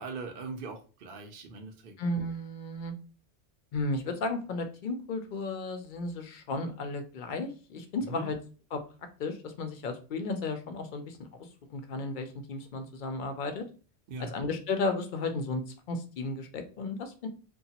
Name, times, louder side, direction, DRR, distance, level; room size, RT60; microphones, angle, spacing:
voice 1, 0.0-1.9 8.1-8.3 14.1-14.3, right 3 dB, 60° right, 3 dB, 0.6 m, -40 dB
voice 2, 2.0-2.9 3.7-8.4 8.7-8.8 9.2-13.7 14.2-17.3, left 2 dB, 60° left, 6 dB, 0.6 m, -34 dB
2.8 x 2.2 x 2.7 m, 0.37 s
omnidirectional pair, 1.1 m